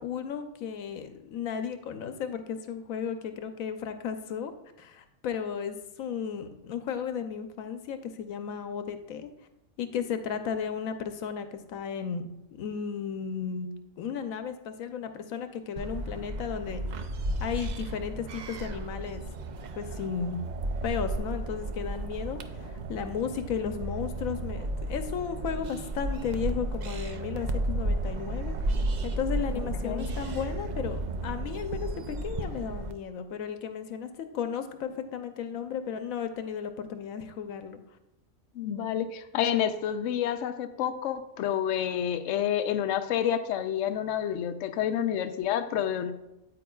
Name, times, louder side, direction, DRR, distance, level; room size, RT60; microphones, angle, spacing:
voice 1, 0.0-4.5 4.8-9.3 9.8-13.7 14.0-16.8 17.4-19.2 19.8-20.4 20.8-28.5 29.0-37.8, left 7 dB, 90° left, 8 dB, 1.1 m, -34 dB
sound 1, 15.8-32.9, right 2 dB, 70° right, 0.4 m, -33 dB
voice 2, 29.8-30.1 38.6-46.1, left 9 dB, 70° left, 8 dB, 0.9 m, -29 dB
9.1 x 8.7 x 2.3 m, 0.89 s
omnidirectional pair, 1.4 m